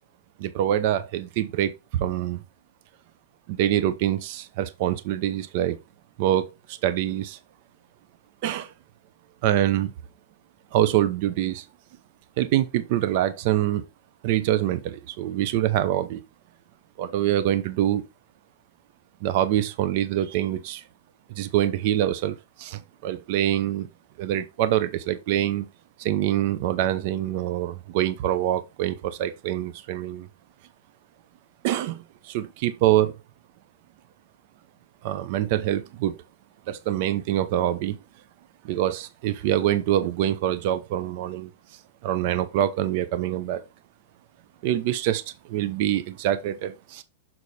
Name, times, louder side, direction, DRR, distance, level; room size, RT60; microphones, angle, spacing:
voice 1, 0.4-2.4 3.5-5.8 6.2-7.4 8.4-8.7 9.4-9.9 10.7-11.6 12.4-13.8 14.2-16.2 17.0-18.0 19.2-20.8 21.3-23.9 24.2-25.7 26.0-30.3 31.6-33.1 35.0-36.1 36.7-38.0 38.6-41.5 42.0-43.6 44.6-47.0, right 12 dB, 50° right, 0.7 m, -25 dB
6.6 x 4.0 x 4.2 m
supercardioid pair, 150°, 0 cm